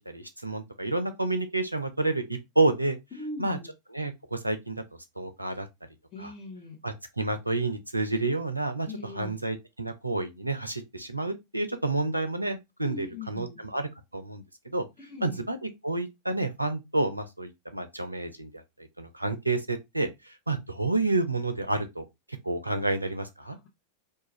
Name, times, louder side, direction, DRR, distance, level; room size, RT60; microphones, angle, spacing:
voice 1, 0.1-3.0 3.4-3.6 3.9-4.8 5.2-5.7 6.2-6.3 6.8-14.8 15.2-18.5 19.0-20.1 20.5-22.1 22.4-23.6, right 2 dB, 85° right, 0.4 m, -29 dB
voice 2, 3.1-3.7 6.1-6.8 8.9-9.4 12.8-13.6 15.0-15.4, left 3 dB, 30° left, 0.7 m, -40 dB
2.3 x 2.2 x 3.0 m
figure-of-eight pair, 90°, 0 cm